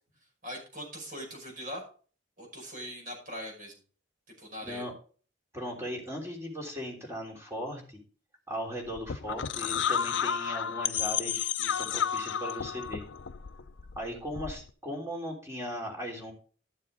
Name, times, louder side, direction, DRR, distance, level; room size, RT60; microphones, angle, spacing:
voice 1, 0.4-1.8 2.4-3.7 4.4-4.9, equal, 50° right, 0 dB, 5.6 m, -41 dB
voice 2, 4.6-4.9 5.5-8.0 8.5-13.0 13.9-16.3, equal, 15° right, 0 dB, 3.3 m, -38 dB
sound 1, 8.9-14.7, left 8 dB, 80° left, 0.6 m, -32 dB
12.5 x 7.3 x 3.8 m, 0.40 s
head